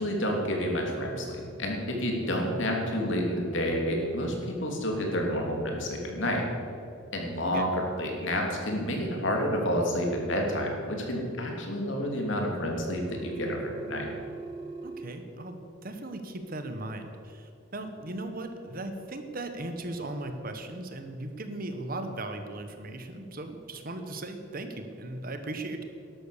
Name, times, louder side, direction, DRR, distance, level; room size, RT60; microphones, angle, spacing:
voice 1, 0.0-6.5 7.1-14.1, equal, 60° left, 1 dB, 2.9 m, -29 dB
Telephone, 13.0-15.0, right 3 dB, 25° right, 1.6 m, -40 dB
voice 2, 14.8-25.8, right 2 dB, 45° right, 7 dB, 1.2 m, -37 dB
12.5 x 12.0 x 6.8 m, 2.7 s
head